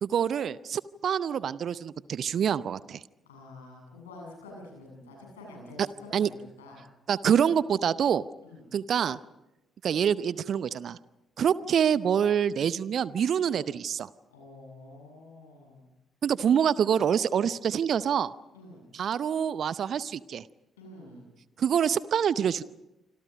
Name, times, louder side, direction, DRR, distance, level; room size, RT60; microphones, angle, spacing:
voice 1, 0.0-3.0 6.1-6.3 7.1-8.2 8.7-9.2 9.8-11.0 11.4-14.1 16.2-18.3 18.9-20.4 21.6-22.6, right 8 dB, 50° right, 18 dB, 0.7 m, -26 dB
voice 2, 3.2-6.8 8.4-8.7 14.3-15.8 18.5-18.9 20.8-21.3, left 2 dB, 80° left, 0 dB, 7.8 m, -48 dB
27.5 x 25.5 x 5.2 m, 0.94 s
figure-of-eight pair, 40°, 0 cm